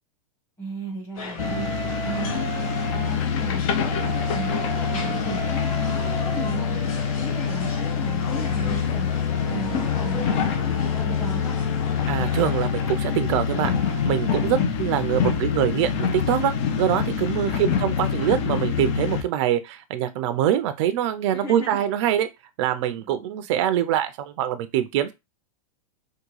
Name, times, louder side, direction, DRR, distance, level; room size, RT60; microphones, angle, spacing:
voice 1, 0.6-1.7 2.0-2.5 2.9-9.1 9.5-11.6 17.3-17.9 21.3-21.9 23.1-23.4, right 1 dB, 10° left, 1.2 m, -35 dB
sound 1, 1.1-12.7, left 4 dB, 70° left, 1.4 m, -37 dB
sound 2, 1.4-19.2, left 6 dB, 50° left, 0.7 m, -25 dB
Wind instrument woodwind instrument, 1.4-3.2 3.8-8.6 9.3-14.5, right 6 dB, 5° right, 0.5 m, -38 dB
voice 2, 12.1-13.7 14.0-22.3 22.6-25.1, right 11 dB, 55° right, 0.4 m, -24 dB
3.5 x 2.3 x 3.1 m
hypercardioid pair, 125°, 18 cm